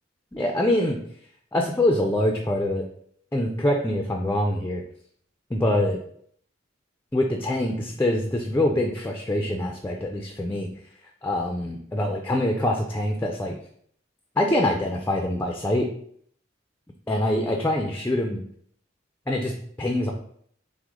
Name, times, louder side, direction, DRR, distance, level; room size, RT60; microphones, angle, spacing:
voice 1, 0.3-1.0 1.5-2.9 3.3-4.8 5.5-6.0 7.1-10.7 11.2-13.5 14.4-15.9 17.1-18.4 19.3-20.1, left 1 dB, 10° left, 2 dB, 0.4 m, -24 dB
6.0 x 2.1 x 3.7 m, 0.63 s
head